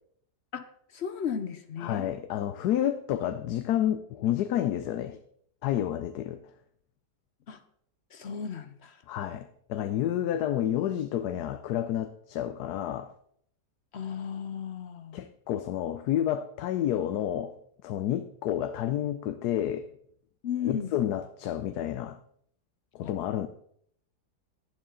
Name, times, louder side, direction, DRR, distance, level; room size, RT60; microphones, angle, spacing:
voice 1, 0.9-2.1 7.5-7.6 8.1-8.9 13.9-15.2 20.4-20.9 23.0-23.1, left 7 dB, 60° left, 0.7 m, -35 dB
voice 2, 1.8-5.2 5.6-6.4 9.1-13.1 15.1-17.5 17.8-19.9 20.6-22.2 22.9-23.5, left 11 dB, 75° left, 1.1 m, -30 dB
11.5 x 11.0 x 3.8 m
omnidirectional pair, 1.8 m